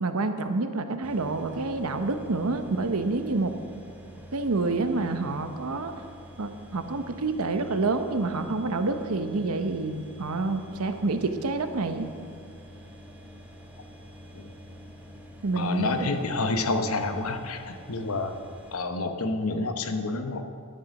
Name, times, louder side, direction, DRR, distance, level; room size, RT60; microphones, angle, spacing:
voice 1, 0.0-3.6 4.3-5.9 6.4-12.1 15.4-16.1, right 3 dB, 75° right, 8 dB, 0.8 m, -28 dB
sound 1, 1.0-18.7, equal, 5° right, 1.3 m, -47 dB
voice 2, 15.5-18.3 18.7-20.4, left 3 dB, 70° left, 7 dB, 0.9 m, -28 dB
11.0 x 7.7 x 6.4 m, 2.2 s
head